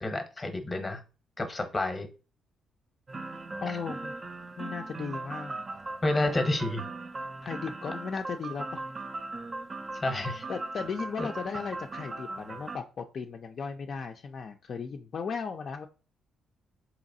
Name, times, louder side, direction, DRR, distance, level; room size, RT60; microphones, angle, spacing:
voice 1, 0.0-1.0 1.4-2.1 3.7-3.8 6.0-6.8 9.9-10.4 11.2-11.3, left 2 dB, 20° left, 7 dB, 0.7 m, -30 dB
sound 1, 3.1-12.8, right 2 dB, 30° right, 0.3 m, -39 dB
voice 2, 3.6-4.1 4.6-5.6 7.4-8.9 10.5-15.9, left 5 dB, 50° left, 4 dB, 0.3 m, -36 dB
3.9 x 2.8 x 2.6 m, 0.33 s
cardioid pair, 90°, 0 cm